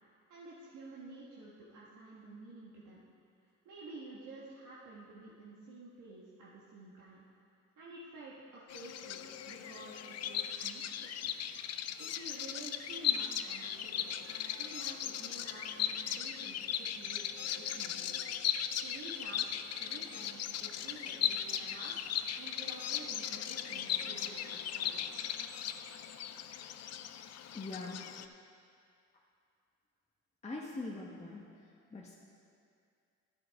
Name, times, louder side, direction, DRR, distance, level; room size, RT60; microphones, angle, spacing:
voice 1, 0.3-3.0 3.6-7.2 7.8-9.2 9.5-10.8 11.2-11.3 12.0-14.0 14.5-18.3 18.8-21.9 22.4-25.3, right 3 dB, 70° right, -6 dB, 1.4 m, -51 dB
Bird vocalization bird call bird song, 8.7-28.3, left 9 dB, 60° left, 0.5 m, -38 dB
voice 2, 27.5-28.0 30.4-31.4 31.9-32.2, left 2 dB, 20° left, -3 dB, 1.0 m, -42 dB
12.0 x 9.3 x 3.5 m, 2.4 s
cardioid pair, 90°, 30 cm